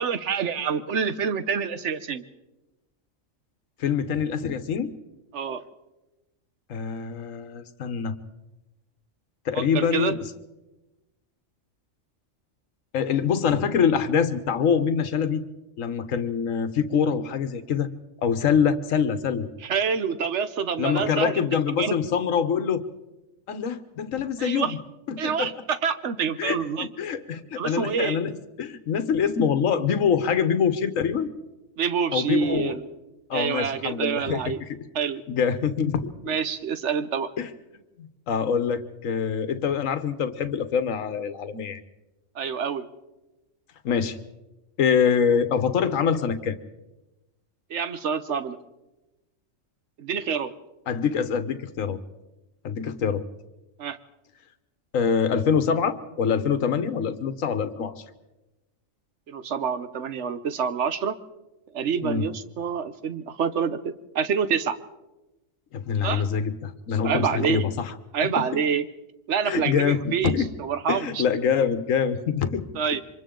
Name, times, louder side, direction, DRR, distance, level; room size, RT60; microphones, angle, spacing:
voice 1, 0.0-2.2 5.3-5.6 9.5-10.1 19.6-21.5 21.8-21.9 24.4-24.7 25.2-26.9 27.6-28.2 31.8-32.8 33.3-34.6 34.9-35.2 36.2-37.3 42.3-42.9 47.7-48.6 50.0-50.5 53.8-54.0 59.3-61.1 61.7-64.7 66.0-66.2 67.0-67.6 68.1-68.9 69.3-71.2 72.7-73.0, right 6 dB, 60° right, 12 dB, 1.2 m, -27 dB
voice 2, 3.8-4.9 6.7-8.1 9.4-10.2 12.9-15.4 15.8-17.9 18.2-19.5 20.8-22.8 23.5-24.7 25.1-25.5 26.4-31.3 32.1-32.8 33.3-34.4 35.3-36.3 37.4-37.5 38.0-41.8 43.8-44.2 44.8-46.6 50.9-52.0 52.6-53.2 54.9-58.0 62.0-62.3 65.7-67.9 68.4-68.5 69.4-70.5 70.9-72.6, left 7 dB, 75° left, 10 dB, 1.4 m, -25 dB
27.5 x 24.5 x 3.8 m, 1.0 s
omnidirectional pair, 1.4 m